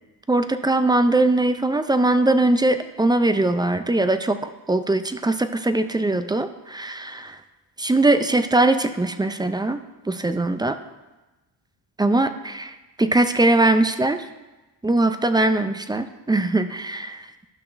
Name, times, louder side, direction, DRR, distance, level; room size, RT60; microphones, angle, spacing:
voice 1, 0.3-4.4 4.7-7.4 7.8-9.8 10.1-10.8 12.0-12.7 13.0-14.2 14.8-17.2, right 2 dB, 10° right, 10 dB, 0.3 m, -21 dB
12.5 x 5.9 x 2.5 m, 1.1 s
supercardioid pair, 60°, 44 cm